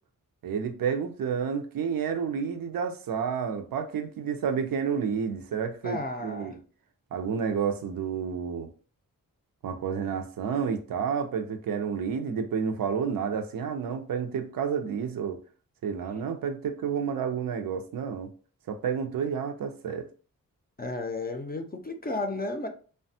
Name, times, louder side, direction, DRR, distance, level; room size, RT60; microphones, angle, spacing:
voice 1, 0.4-6.6 7.1-8.7 9.6-15.4 15.8-18.3 18.7-20.1, right 6 dB, 75° right, 0.5 m, -30 dB
voice 2, 5.8-6.5 20.8-22.7, left 2 dB, 25° left, 0.5 m, -33 dB
3.2 x 2.2 x 2.6 m
cardioid pair, 45°, 34 cm